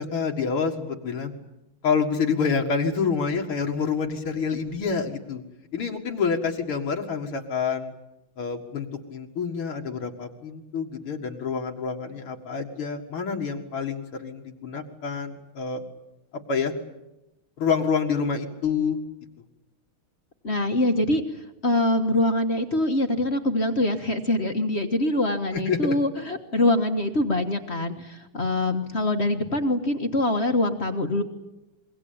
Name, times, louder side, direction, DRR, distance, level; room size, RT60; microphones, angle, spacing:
voice 1, 0.0-1.3 1.8-5.4 5.7-7.9 8.4-15.8 16.5-16.7 17.6-19.0 25.5-26.0, left 5 dB, 80° left, 1 dB, 2.9 m, -27 dB
voice 2, 20.4-31.2, left 1 dB, 35° left, 6 dB, 1.6 m, -24 dB
26.5 x 22.5 x 8.7 m, 0.95 s
omnidirectional pair, 2.4 m